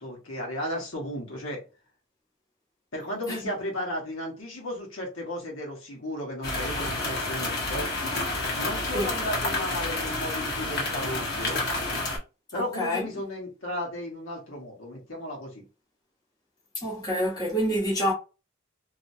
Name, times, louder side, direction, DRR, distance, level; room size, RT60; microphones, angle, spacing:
voice 1, 0.0-1.6 2.9-7.9 8.5-11.6 12.5-15.5, left 1 dB, 75° left, 1.4 m, -34 dB
sound 1, 6.4-12.2, left 2 dB, 55° left, 1.2 m, -29 dB
voice 2, 12.5-13.0 16.7-18.1, equal, 20° left, 1.1 m, -27 dB
3.0 x 2.7 x 2.7 m
head